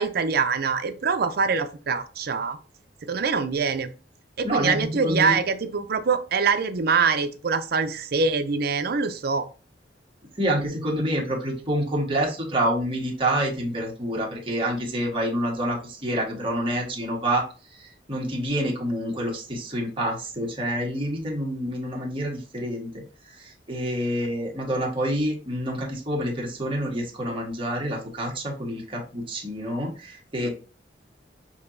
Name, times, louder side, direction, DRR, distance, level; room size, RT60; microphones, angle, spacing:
voice 1, 0.0-2.6 3.0-3.9 4.4-9.5 30.4-30.5, right 5 dB, 60° right, 9 dB, 0.5 m, -24 dB
voice 2, 4.4-5.4 10.4-17.4 18.1-23.0 23.4-30.5, right 1 dB, 30° right, -1 dB, 1.4 m, -27 dB
6.4 x 2.9 x 2.6 m, 0.35 s
head